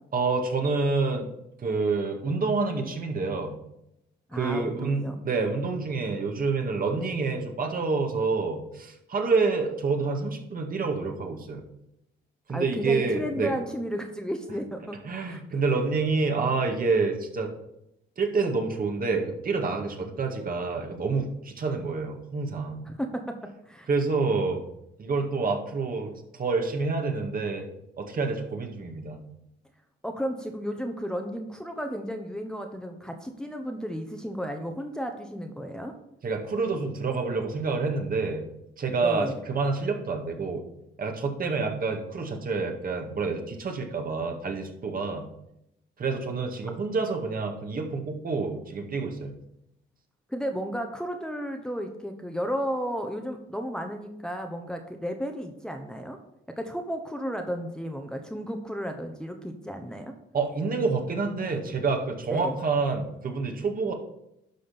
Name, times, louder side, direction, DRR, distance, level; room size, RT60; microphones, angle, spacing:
voice 1, 0.1-1.3 1.6-3.5 4.3-11.6 12.5-13.5 15.1-17.5 18.2-22.9 23.9-24.6 25.0-27.6 28.0-29.2 36.2-38.4 38.8-40.6 41.0-45.3 46.0-49.3 60.3-63.9, right 4 dB, 45° right, 3 dB, 1.8 m, -28 dB
voice 2, 4.3-5.1 12.5-15.0 15.3-15.4 22.9-23.4 23.7-23.9 30.0-35.9 39.0-39.4 50.3-56.2 56.6-60.1 62.3-62.6, equal, 5° left, 4 dB, 1.1 m, -33 dB
11.5 x 3.8 x 6.9 m, 0.81 s
cardioid pair, 90°, 20 cm